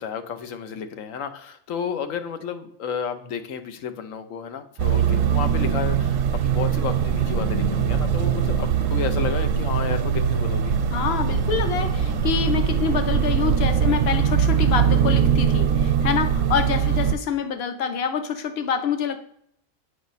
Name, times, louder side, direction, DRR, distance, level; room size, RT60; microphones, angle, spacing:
voice 1, 0.0-10.8 16.7-17.0, left 7 dB, 90° left, 8 dB, 1.2 m, -32 dB
sound 1, 4.8-17.1, right 7 dB, 75° right, 1.0 m, -21 dB
voice 2, 10.9-19.2, left 7 dB, 55° left, 8 dB, 1.0 m, -26 dB
8.1 x 5.2 x 4.0 m, 0.68 s
omnidirectional pair, 1.3 m